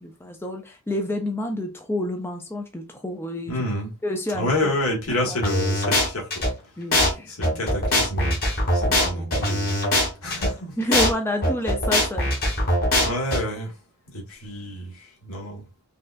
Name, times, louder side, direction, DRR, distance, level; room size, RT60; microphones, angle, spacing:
voice 1, 0.0-3.6 4.0-4.7 5.2-5.4 6.8-7.6 8.8-9.4 10.8-12.4 12.8-13.1, left 1 dB, 10° left, 0.5 m, -29 dB
voice 2, 3.5-3.9 4.4-6.5 7.3-8.4 8.7-9.8 10.2-10.7 13.0-13.7 14.1-15.6, left 1 dB, 70° left, 1.6 m, -28 dB
sound 1, 5.4-6.5 6.9-7.1 7.4-10.5 10.9-11.1 11.4-13.4, left 1 dB, 45° left, 1.7 m, -21 dB
5.2 x 2.4 x 2.5 m
head